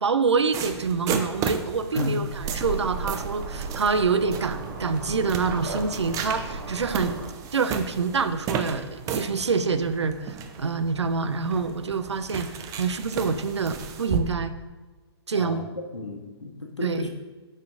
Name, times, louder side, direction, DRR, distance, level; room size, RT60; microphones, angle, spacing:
voice 1, 0.0-7.1 7.5-14.5 15.3-15.6 16.8-17.1, right 5 dB, 75° right, 11 dB, 0.6 m, -26 dB
sound 1, 0.5-14.2, right 7 dB, 25° right, 0.6 m, -35 dB
sound 2, 2.2-7.3, right 4 dB, 50° right, 1.2 m, -34 dB
voice 2, 15.9-17.1, left 3 dB, 85° left, 2 dB, 1.2 m, -33 dB
9.4 x 6.4 x 2.6 m, 1.3 s
figure-of-eight pair, 115°, 14 cm